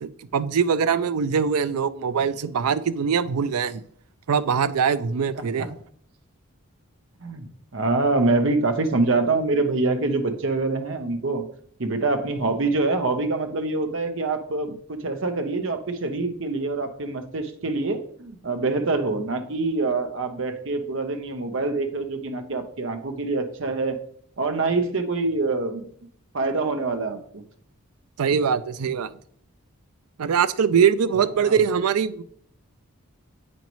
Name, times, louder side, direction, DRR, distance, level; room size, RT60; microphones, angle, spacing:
voice 1, 0.0-3.8 4.3-5.7 28.2-29.1 30.2-32.2, right 6 dB, 85° right, 0.4 m, -22 dB
voice 2, 7.7-11.4 11.8-24.0 24.4-25.9 26.3-27.4 31.4-31.6, right 3 dB, 55° right, 0.8 m, -25 dB
8.2 x 5.2 x 3.0 m
head